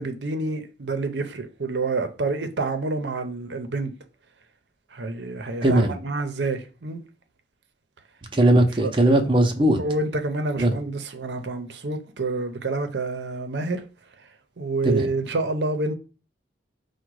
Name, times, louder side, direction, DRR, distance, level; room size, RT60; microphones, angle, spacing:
voice 1, 0.0-3.9 4.9-7.0 8.8-8.9 9.8-13.8 14.6-15.9, right 3 dB, 70° right, 0.6 m, -28 dB
voice 2, 5.6-5.9 8.3-9.8 10.6-10.7 14.8-15.1, right 1 dB, 30° right, 0.6 m, -19 dB
5.0 x 2.2 x 4.6 m
head